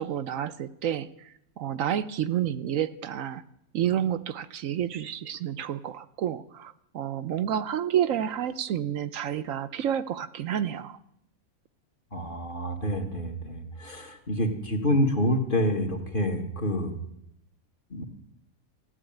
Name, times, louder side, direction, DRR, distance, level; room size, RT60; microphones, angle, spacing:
voice 1, 0.0-3.4 3.7-11.0, right 10 dB, 70° right, 13 dB, 1.1 m, -30 dB
voice 2, 12.1-16.9 17.9-18.0, equal, 40° left, 3 dB, 2.1 m, -27 dB
15.0 x 9.2 x 9.1 m, 0.78 s
omnidirectional pair, 1.5 m